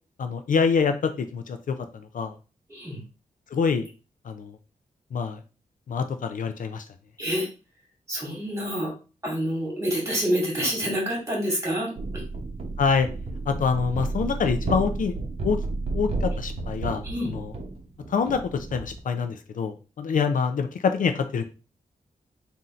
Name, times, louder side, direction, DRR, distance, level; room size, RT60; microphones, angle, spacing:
voice 1, 0.2-1.7 2.1-2.3 3.5-3.9 4.3-4.5 5.1-5.4 5.9-6.8 12.8-13.1 13.5-15.1 15.4-15.6 15.9-17.5 18.1-21.4, left 5 dB, 65° left, 8 dB, 0.5 m, -25 dB
voice 2, 2.7-3.0 7.2-7.5 8.1-8.9 9.2-12.2 17.0-17.3, equal, 20° right, -3 dB, 2.2 m, -27 dB
sound 1, 12.0-19.0, right 3 dB, 45° right, 0.9 m, -32 dB
3.8 x 2.7 x 4.2 m, 0.33 s
wide cardioid pair, 150°, 15 cm